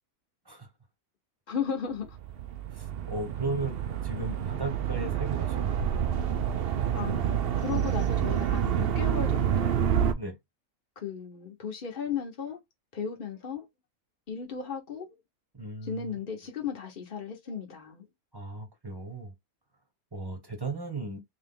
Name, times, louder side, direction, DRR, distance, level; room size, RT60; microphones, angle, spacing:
voice 1, 1.5-2.1 6.9-9.9 11.0-12.6 12.9-13.6 14.3-15.1 15.8-18.1, left 7 dB, 40° left, 1.2 m, -35 dB
sound 1, 2.1-10.1, right 9 dB, 55° right, 0.7 m, -28 dB
voice 2, 2.7-6.0 10.2-10.4 15.5-16.1 18.3-19.3 20.1-21.2, right 3 dB, 20° right, 1.0 m, -36 dB
3.7 x 3.2 x 3.7 m
omnidirectional pair, 1.5 m